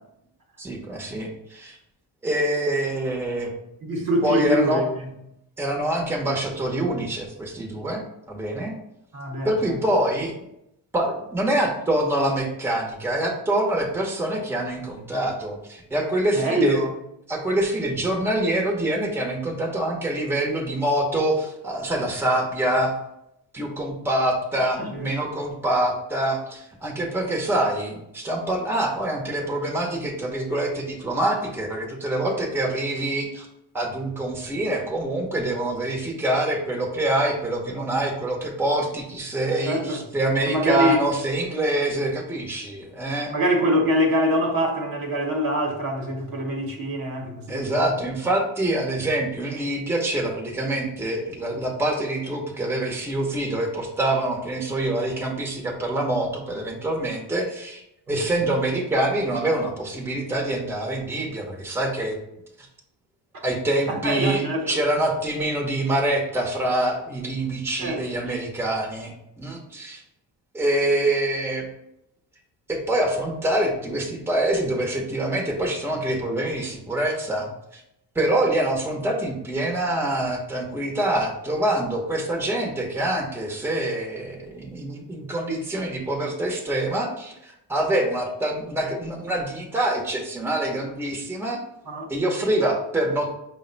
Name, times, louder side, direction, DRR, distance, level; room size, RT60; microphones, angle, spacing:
voice 1, 0.6-1.8 2.2-3.5 4.2-4.8 5.6-8.7 9.4-10.3 10.9-16.8 17.3-22.9 23.5-33.5 33.7-43.3 47.5-57.8 58.1-62.2 63.4-70.0 70.5-71.6 72.7-77.8 78.1-91.6 92.1-93.3, right 1 dB, 5° right, -1 dB, 0.8 m, -25 dB
voice 2, 3.8-4.8 9.1-9.8 16.3-16.9 24.8-25.1 39.6-40.0 40.5-41.0 43.3-47.9 63.9-64.8 67.8-68.0 68.3-68.4 91.9-92.0, equal, 50° right, 1 dB, 1.1 m, -24 dB
5.1 x 2.2 x 3.9 m, 0.80 s
cardioid pair, 90°, 45 cm